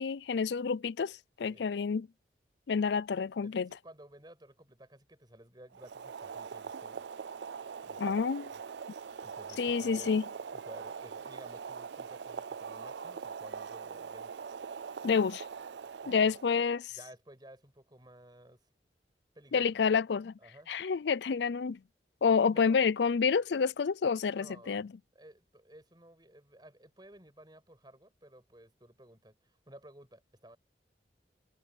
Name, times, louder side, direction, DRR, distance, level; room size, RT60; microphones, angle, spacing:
voice 1, 0.0-2.1 2.7-3.7 8.0-8.5 9.6-10.2 15.0-15.4 16.1-17.0 19.5-20.3 20.7-21.8 22.2-24.9, left 5 dB, 75° left, 0.4 m, -29 dB
voice 2, 3.4-7.0 7.8-8.6 9.2-10.1 10.5-14.4 16.0-16.4 17.0-18.6 19.3-19.7 20.4-20.7 22.5-22.9 24.4-24.8 25.1-30.6, right 1 dB, 25° right, 6.7 m, -54 dB
Boiling, 5.7-16.7, right 6 dB, 80° right, 0.5 m, -42 dB
head